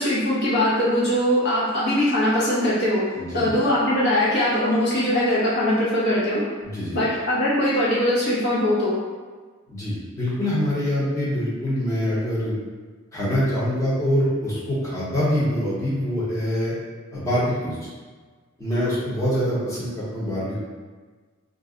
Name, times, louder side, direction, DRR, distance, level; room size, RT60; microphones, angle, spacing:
voice 1, 0.0-3.0 3.3-6.4 6.9-9.0, left 1 dB, 55° left, -9 dB, 0.9 m, -21 dB
voice 2, 3.1-3.5 6.6-7.0 9.7-12.6 13.1-16.7 17.1-17.8 18.6-20.6, equal, 15° left, -9 dB, 0.9 m, -24 dB
2.6 x 2.2 x 3.7 m, 1.4 s
head